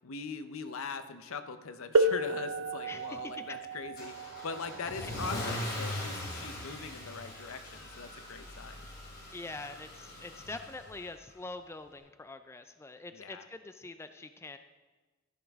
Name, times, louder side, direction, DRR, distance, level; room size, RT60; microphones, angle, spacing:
voice 1, 0.0-8.9 13.1-13.5, left 5 dB, 75° left, 10 dB, 0.7 m, -41 dB
sound 1, 1.9-7.4 8.4-8.5 9.4-9.6, right 2 dB, 70° right, 0.5 m, -33 dB
voice 2, 2.9-3.2 3.5-3.6 5.0-5.2 9.3-14.6, left 3 dB, 10° left, 9 dB, 0.3 m, -44 dB
Car / Engine starting / Accelerating revving vroom, 4.0-11.1, left 1 dB, 50° left, 3.2 m, -41 dB
13.5 x 10.0 x 3.5 m, 1.3 s
head